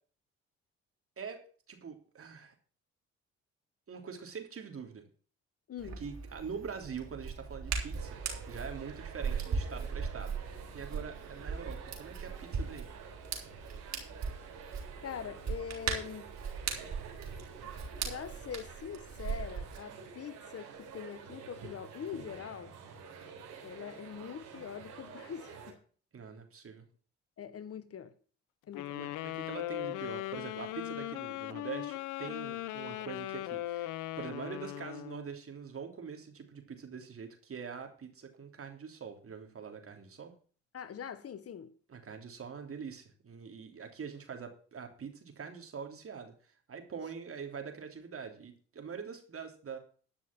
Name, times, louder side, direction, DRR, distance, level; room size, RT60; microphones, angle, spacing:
voice 1, 1.7-2.5 3.9-5.1 6.0-8.2 8.5-12.9 26.1-26.8 28.9-40.3 41.9-49.8, right 6 dB, 45° right, 3.2 m, -44 dB
voice 2, 5.7-6.0 15.0-16.3 18.0-22.7 23.6-25.8 27.4-28.2 28.7-29.1 40.7-41.7, left 8 dB, 50° left, 1.1 m, -43 dB
Hands, 5.8-19.8, right 5 dB, 65° right, 4.3 m, -39 dB
sound 1, 7.9-25.7, right 6 dB, 85° right, 3.8 m, -49 dB
sound 2, 28.7-35.3, left 15 dB, 80° left, 0.7 m, -39 dB
12.0 x 6.1 x 7.4 m
supercardioid pair, 60°, 30 cm